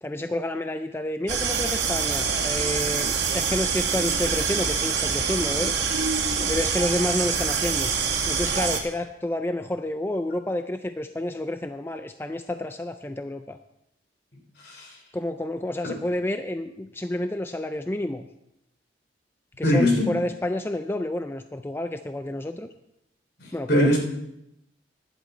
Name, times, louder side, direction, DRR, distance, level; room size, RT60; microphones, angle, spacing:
voice 1, 0.0-5.7 6.4-7.9 8.3-13.6 15.1-18.3 19.6-22.7 23.5-23.9, left 1 dB, 15° left, 8 dB, 0.4 m, -29 dB
sound 1, 1.3-8.8, right 6 dB, 75° right, 2.0 m, -25 dB
voice 2, 19.6-20.1 23.4-24.1, left 1 dB, 60° left, 1 dB, 3.4 m, -22 dB
15.0 x 11.0 x 4.4 m, 0.82 s
head